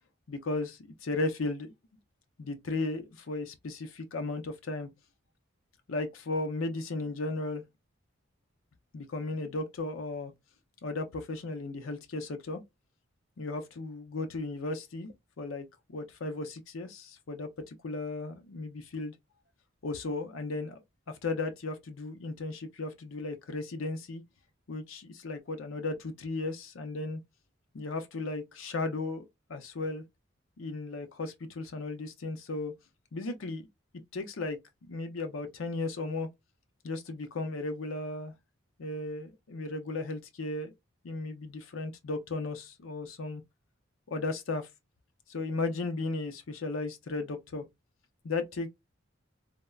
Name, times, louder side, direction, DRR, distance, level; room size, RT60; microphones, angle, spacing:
voice 1, 0.3-1.7 2.4-4.9 5.9-7.6 8.9-10.3 10.8-12.6 13.4-19.1 19.8-20.8 21.1-24.2 24.7-27.2 27.7-29.2 29.5-30.0 30.6-32.7 33.1-33.6 34.1-36.3 36.8-38.3 38.8-40.7 41.0-43.4 44.1-44.7 45.3-47.6 48.2-48.7, left 3 dB, 85° left, 0.6 m, -35 dB
3.3 x 2.0 x 2.3 m
head